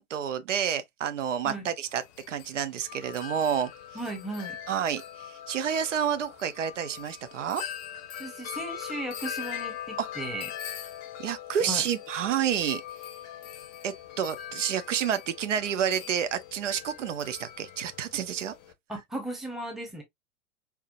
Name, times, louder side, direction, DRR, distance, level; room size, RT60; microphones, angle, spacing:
voice 1, 0.0-2.0 2.3-3.7 4.7-7.6 10.0-10.1 11.2-12.8 13.8-18.5, right 8 dB, 60° right, 0.8 m, -29 dB
Wind chime, 1.9-18.7, left 10 dB, 30° left, 0.7 m, -41 dB
voice 2, 3.9-4.6 8.2-10.5 11.6-11.8 18.9-20.0, right 1 dB, ahead, 1.0 m, -36 dB
4.3 x 3.6 x 2.5 m
figure-of-eight pair, 100°, 43 cm